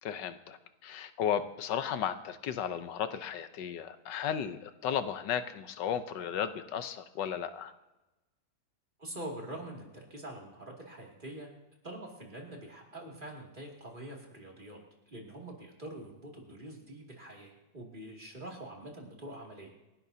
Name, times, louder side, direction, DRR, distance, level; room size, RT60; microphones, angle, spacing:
voice 1, 0.0-7.7, left 9 dB, 85° left, 11 dB, 1.5 m, -34 dB
voice 2, 9.0-11.5 11.8-14.8 15.1-19.7, right 1 dB, 30° right, -1 dB, 2.7 m, -45 dB
28.5 x 11.5 x 2.8 m, 1.0 s
omnidirectional pair, 1.8 m